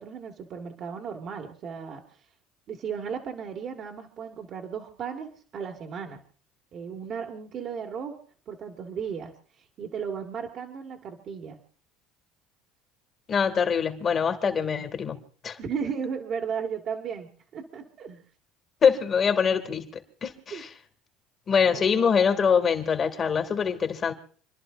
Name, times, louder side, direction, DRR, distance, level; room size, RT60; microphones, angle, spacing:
voice 1, 0.0-2.0 2.7-6.2 6.7-8.1 8.5-11.6 14.4-14.9 15.6-18.2 20.5-20.6 21.6-22.1, right 6 dB, 50° right, 1.9 m, -35 dB
voice 2, 13.3-15.2 15.4-15.6 18.8-19.9 20.2-20.7 21.5-24.1, left 6 dB, 35° left, 2.3 m, -24 dB
29.0 x 11.5 x 2.6 m
supercardioid pair, 95°, 0 cm